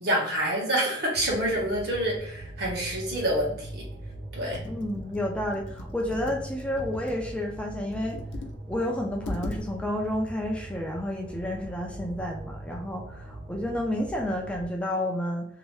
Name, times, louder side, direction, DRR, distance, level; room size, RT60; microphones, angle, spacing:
voice 1, 0.0-3.8 4.3-4.6, right 1 dB, 65° right, -3 dB, 1.1 m, -27 dB
sound 1, 1.1-14.7, right 1 dB, 85° right, 0.6 m, -41 dB
Computer keyboard, 4.5-7.3 7.9-8.6 8.9-9.0 9.2-9.6, left 2 dB, 85° left, 0.5 m, -39 dB
voice 2, 4.6-8.2 8.7-15.4, left 1 dB, 5° left, -1 dB, 0.4 m, -30 dB
2.7 x 2.2 x 3.1 m, 0.65 s
head